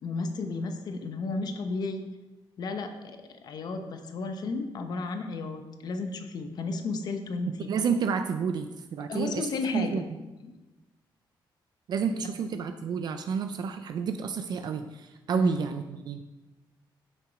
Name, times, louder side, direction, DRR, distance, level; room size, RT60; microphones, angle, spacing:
voice 1, 0.0-2.0 2.6-3.2 3.4-7.7 9.1-10.0 10.4-10.6 15.3-15.6, left 3 dB, 50° left, 7 dB, 0.9 m, -33 dB
voice 2, 7.7-9.5 9.7-10.0 11.9-16.2, right 6 dB, 55° right, 8 dB, 0.5 m, -30 dB
7.7 x 6.6 x 5.0 m, 1.1 s
wide cardioid pair, 170°, 9 cm